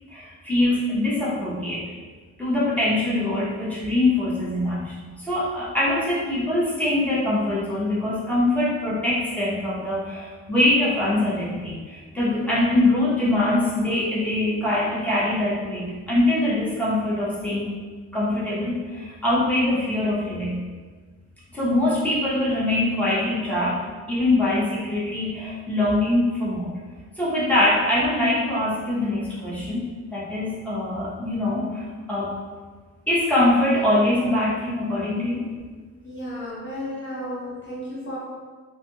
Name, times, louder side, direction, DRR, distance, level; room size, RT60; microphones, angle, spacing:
voice 1, 0.1-1.8 2.4-17.7 18.1-20.6 21.5-23.8 24.1-26.7 27.2-29.8 30.1-32.4 33.1-35.4, left 1 dB, 5° left, -9 dB, 0.8 m, -23 dB
voice 2, 36.0-38.2, equal, 40° left, -7 dB, 0.6 m, -33 dB
2.4 x 2.2 x 3.0 m, 1.4 s
cardioid pair, 110°, 30 cm